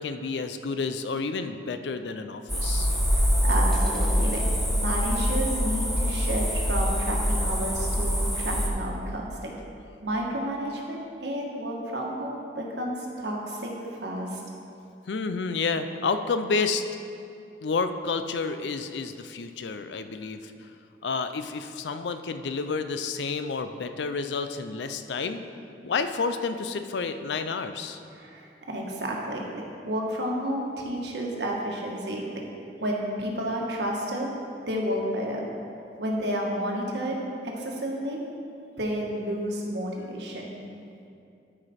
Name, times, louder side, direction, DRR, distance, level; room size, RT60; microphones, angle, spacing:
voice 1, 0.0-2.9 15.1-16.8 17.6-20.5 21.0-25.4 25.8-28.0, left 4 dB, 75° left, 9 dB, 0.5 m, -30 dB
sound 1, 2.5-8.7, equal, ahead, 1.1 m, -25 dB
voice 2, 3.2-4.4 4.7-9.3 10.0-13.7 14.0-14.4 28.1-29.4 29.8-32.4 32.8-34.3 34.7-35.5 36.0-38.2 38.8-40.5, equal, 70° right, -1 dB, 1.4 m, -31 dB
13.0 x 5.0 x 4.3 m, 2.6 s
head